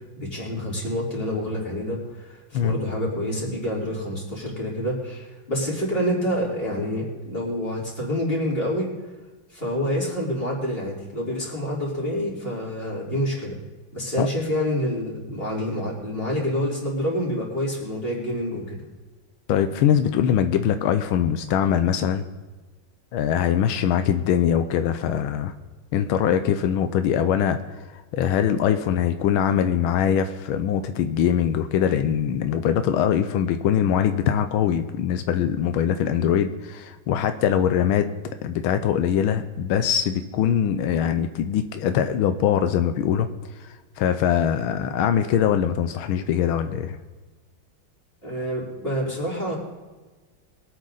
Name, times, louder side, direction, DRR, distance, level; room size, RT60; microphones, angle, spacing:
voice 1, 0.2-8.9 9.5-13.6 13.9-18.9 48.2-49.6, equal, 25° left, -4 dB, 4.4 m, -27 dB
voice 2, 19.5-22.2 23.1-25.5 25.9-27.6 27.9-38.1 38.4-43.3 43.6-47.0, left 9 dB, 90° left, 9 dB, 1.6 m, -22 dB
23.0 x 9.0 x 4.0 m, 1.3 s
omnidirectional pair, 2.2 m